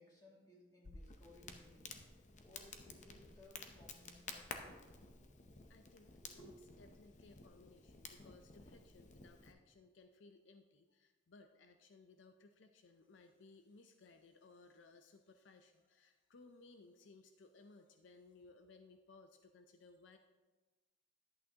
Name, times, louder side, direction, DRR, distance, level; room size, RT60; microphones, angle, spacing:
voice 1, 0.0-1.9 2.4-5.1 6.2-6.7, left 1 dB, 20° left, -4 dB, 2.2 m, -62 dB
Crackle, 0.8-9.5, left 4 dB, 40° left, 0.7 m, -53 dB
voice 2, 5.7-6.5 6.8-20.2, left 3 dB, 75° left, 7 dB, 0.5 m, -62 dB
10.5 x 8.5 x 2.8 m, 1.2 s
head